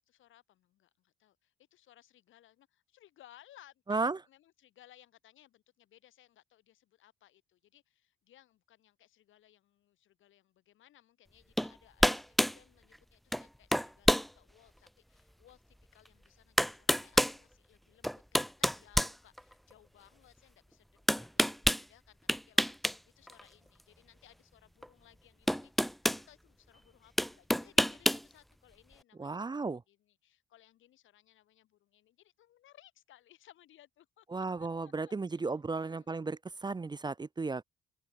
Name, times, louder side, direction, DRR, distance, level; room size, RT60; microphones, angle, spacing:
voice 1, 0.0-12.2 12.5-34.3 34.6-36.2, left 13 dB, 80° left, 5.4 m, -63 dB
sound 1, 11.6-11.7 12.0-12.6 13.3-13.5 13.7-14.3 14.9-15.0 16.1-16.2 16.6-17.4 18.0-19.7 21.1-21.8 22.3-23.0 23.3-23.4 24.8-24.9 25.5-26.2 27.2-28.2, equal, ahead, 0.4 m, -27 dB
voice 2, 29.2-29.8 34.3-37.6, right 3 dB, 20° right, 0.8 m, -34 dB
open air
cardioid pair, 90°, 20 cm